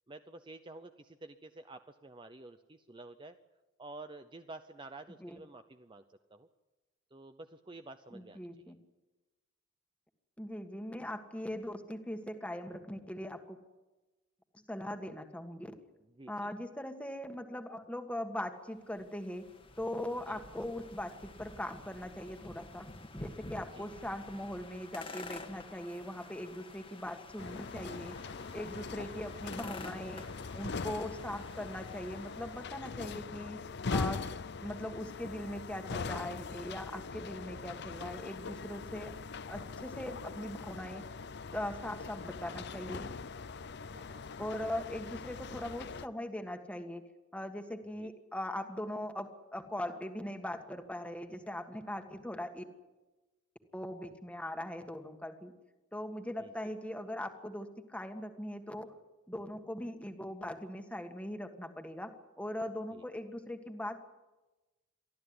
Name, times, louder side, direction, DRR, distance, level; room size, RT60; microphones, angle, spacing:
voice 1, 0.1-3.4 3.8-6.5 7.1-8.7 16.0-16.5 20.3-20.4 23.7-23.9 29.0-29.2 39.1-39.2 43.9-44.2 47.9-48.1 56.4-56.5 62.9-63.0, right 2 dB, 25° right, 9 dB, 0.6 m, -51 dB
voice 2, 8.1-8.8 10.4-13.6 14.7-15.7 16.3-19.5 19.8-22.9 23.1-28.1 28.5-30.2 30.5-33.6 33.9-34.2 34.6-39.2 39.5-41.0 41.5-43.1 44.4-47.0 47.3-52.6 53.7-55.5 55.9-58.9 59.3-64.0, left 1 dB, 5° left, 6 dB, 1.6 m, -40 dB
sound 1, 18.8-32.8, left 2 dB, 25° left, 1.5 m, -50 dB
sound 2, 27.4-46.1, left 4 dB, 55° left, 0.6 m, -41 dB
24.0 x 14.5 x 9.6 m, 1.1 s
head